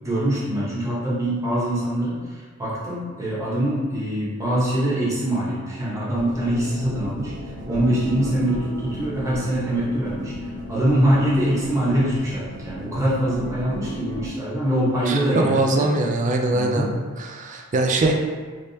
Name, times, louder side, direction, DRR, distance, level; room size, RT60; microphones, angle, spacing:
voice 1, 0.0-15.9 16.5-17.0, right 1 dB, 15° right, -8 dB, 1.0 m, -24 dB
sound 1, 6.1-14.3, equal, 60° right, 0.9 m, -34 dB
voice 2, 15.1-16.9 17.2-18.1, right 2 dB, 35° right, 2 dB, 0.4 m, -22 dB
3.4 x 3.2 x 2.7 m, 1.4 s
head